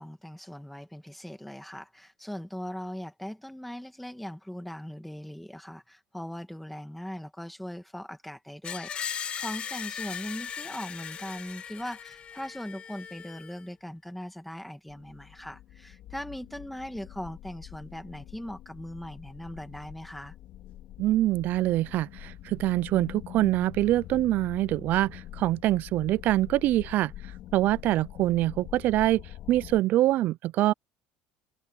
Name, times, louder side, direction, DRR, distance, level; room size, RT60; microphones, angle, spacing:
voice 1, 0.0-20.4, equal, ahead, 2.0 m, -40 dB
Screech, 8.6-13.6, left 8 dB, 30° left, 1.3 m, -38 dB
sound 1, 14.9-29.8, left 13 dB, 50° left, 2.9 m, -45 dB
voice 2, 21.0-27.1 27.5-29.2 29.5-30.7, right 15 dB, 45° right, 0.3 m, -25 dB
cardioid pair, 165°, 4 cm